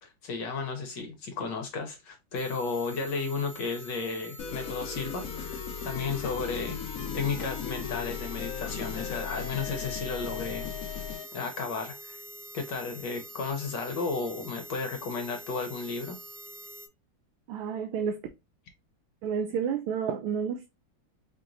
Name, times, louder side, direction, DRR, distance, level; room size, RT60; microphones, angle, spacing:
voice 1, 0.0-6.8 7.1-10.7 11.3-12.2 12.5-16.2, left 4 dB, 65° left, 1.3 m, -33 dB
sound 1, 2.3-16.9, equal, 55° right, 1.2 m, -46 dB
sound 2, 4.4-11.3, left 7 dB, 90° left, 0.7 m, -37 dB
voice 2, 17.5-18.2 19.2-20.7, right 7 dB, 80° right, 1.4 m, -30 dB
5.2 x 2.9 x 2.5 m
omnidirectional pair, 2.3 m